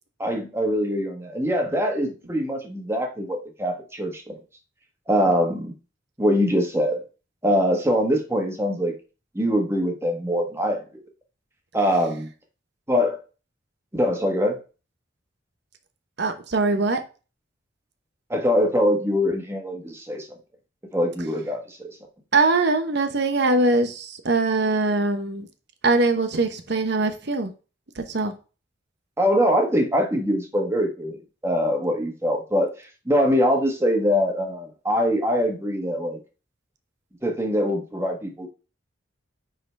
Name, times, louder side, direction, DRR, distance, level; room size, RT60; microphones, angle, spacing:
voice 1, 0.2-4.4 5.1-5.7 6.2-7.0 7.4-8.9 9.3-11.0 11.7-12.3 12.9-13.2 13.9-14.6 18.3-20.3 20.9-21.9 29.2-36.2 37.2-38.5, equal, 15° right, 1.3 m, -23 dB
voice 2, 16.2-17.0 22.3-25.5 25.8-27.5 28.0-28.3, right 3 dB, 55° right, 1.0 m, -22 dB
9.3 x 3.9 x 3.4 m
head